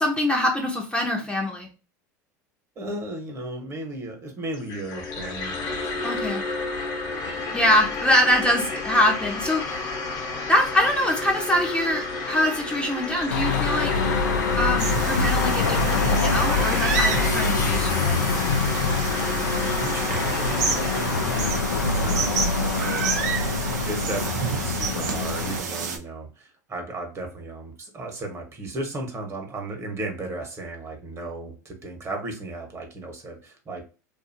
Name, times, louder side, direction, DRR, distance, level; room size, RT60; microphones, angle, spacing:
voice 1, 0.0-1.7 6.0-6.4 7.5-9.8 10.5-13.9 14.6-18.2, left 1 dB, 10° left, 0 dB, 0.7 m, -24 dB
voice 2, 2.8-6.3 7.0-7.5 19.1-19.3 19.8-22.4 22.6-23.4 23.9-33.8, right 2 dB, 30° right, 3 dB, 1.2 m, -35 dB
sound 1, 4.5-21.5, left 3 dB, 55° left, 0.9 m, -31 dB
sound 2, 13.3-25.6, left 4 dB, 90° left, 0.5 m, -25 dB
sound 3, 14.8-26.0, right 5 dB, 75° right, 0.7 m, -29 dB
2.7 x 2.5 x 2.6 m, 0.33 s
hypercardioid pair, 85°, 9 cm